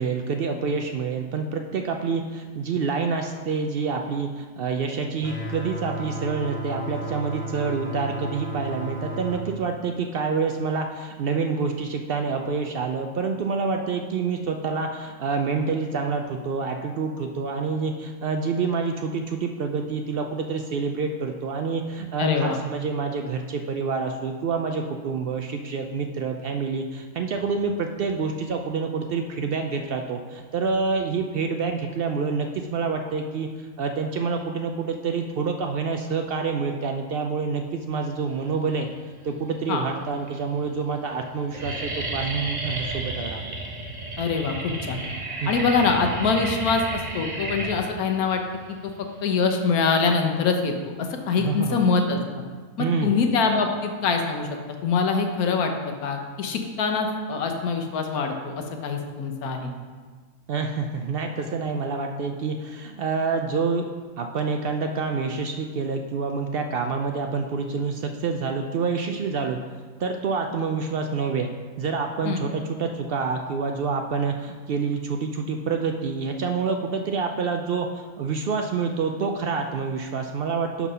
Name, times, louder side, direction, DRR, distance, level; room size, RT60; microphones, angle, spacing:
voice 1, 0.0-38.9 39.2-43.4 45.4-45.5 51.4-51.8 52.8-53.2 60.5-63.8 64.2-69.6 70.0-71.5 71.8-80.9, right 5 dB, 70° right, 4 dB, 0.5 m, -27 dB
sound 1, 5.2-9.4, right 2 dB, 10° left, 0.7 m, -33 dB
voice 2, 22.2-22.6 39.7-39.8 44.2-45.0 45.5-48.4 48.7-48.9 49.2-52.2 52.8-54.5 54.8-59.7 72.2-72.4, left 5 dB, 90° left, 4 dB, 1.3 m, -24 dB
sound 2, 38.9-39.5 40.2-40.3 40.6-40.9 41.2-50.1, right 2 dB, 35° right, 0.9 m, -32 dB
6.0 x 5.7 x 5.4 m, 1.5 s
omnidirectional pair, 1.5 m